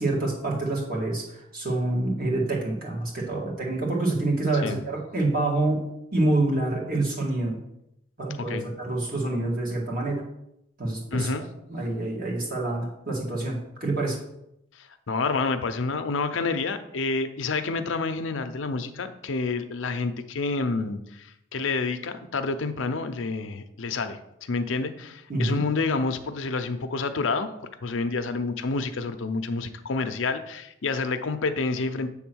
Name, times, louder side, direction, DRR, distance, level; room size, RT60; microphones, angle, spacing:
voice 1, 0.0-7.6 8.2-10.2 10.8-11.3 11.7-14.2 25.3-25.6, right 2 dB, 45° right, -3 dB, 2.0 m, -27 dB
voice 2, 11.1-11.4 14.8-27.5 27.8-32.1, left 3 dB, 75° left, 9 dB, 0.6 m, -28 dB
7.8 x 3.6 x 6.2 m, 0.82 s
head